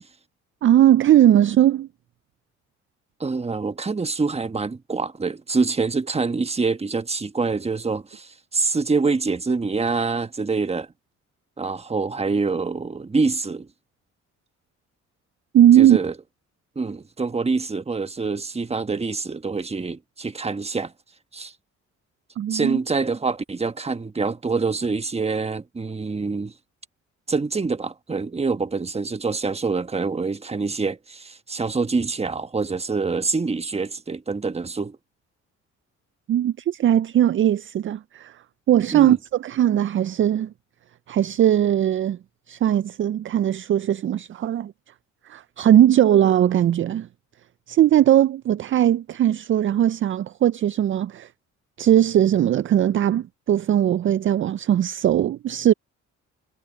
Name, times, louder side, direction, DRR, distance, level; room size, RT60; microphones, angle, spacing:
voice 1, 0.6-1.9 15.5-16.0 22.4-22.8 36.3-38.3 38.7-40.5 41.1-42.2 42.5-44.7 45.3-47.1 47.7-51.3 51.8-55.7, right 11 dB, 45° right, 0.4 m, -19 dB
voice 2, 3.2-10.9 11.6-13.7 15.8-16.1 16.7-20.9 21.3-21.5 22.5-26.5 27.3-35.0 38.9-39.2, right 4 dB, 20° right, 1.2 m, -25 dB
cardioid pair, 90°, 30 cm